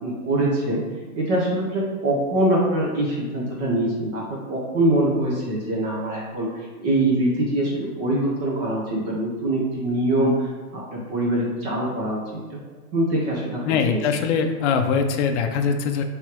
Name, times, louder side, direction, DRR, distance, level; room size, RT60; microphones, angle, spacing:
voice 1, 0.0-0.8 1.1-4.2 4.5-12.2 12.9-13.6 13.9-14.0, right 1 dB, 30° right, -5 dB, 0.9 m, -23 dB
voice 2, 13.7-16.0, left 6 dB, 50° left, 6 dB, 0.5 m, -22 dB
4.4 x 3.4 x 2.9 m, 1.4 s
hypercardioid pair, 130°, 46 cm